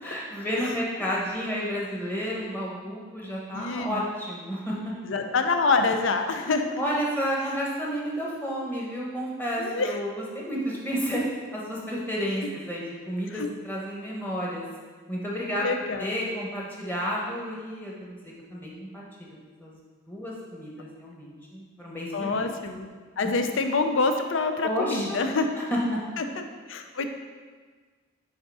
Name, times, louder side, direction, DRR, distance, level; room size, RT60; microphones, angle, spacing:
voice 1, 0.0-4.9 6.8-11.2 11.5-14.7 15.1-15.7 16.0-19.8 20.1-22.4 24.6-25.2 25.6-26.0, equal, 10° left, -4 dB, 1.0 m, -31 dB
voice 2, 3.5-4.0 5.0-6.6 9.6-10.0 13.3-13.5 15.6-16.1 22.1-22.9 23.2-25.5 26.2-27.1, left 3 dB, 70° left, 6 dB, 0.5 m, -26 dB
6.4 x 3.7 x 4.8 m, 1.5 s
head